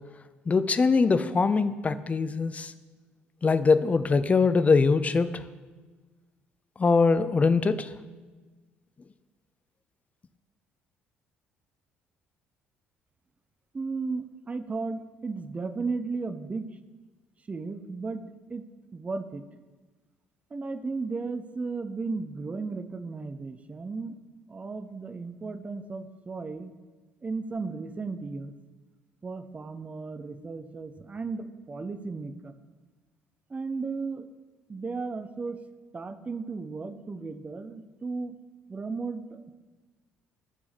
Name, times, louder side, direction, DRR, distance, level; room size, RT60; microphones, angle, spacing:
voice 1, 0.5-2.7 3.4-5.4 6.8-7.9, left 4 dB, 25° left, 12 dB, 0.4 m, -22 dB
voice 2, 13.7-16.8 17.5-18.7 18.9-19.4 20.5-24.2 24.5-26.7 27.2-28.5 29.2-32.6 33.5-34.3 34.7-35.6 35.9-38.4 38.7-39.4, right 4 dB, 25° right, 10 dB, 0.5 m, -35 dB
12.5 x 4.8 x 4.1 m, 1.3 s
figure-of-eight pair, 50°, 6 cm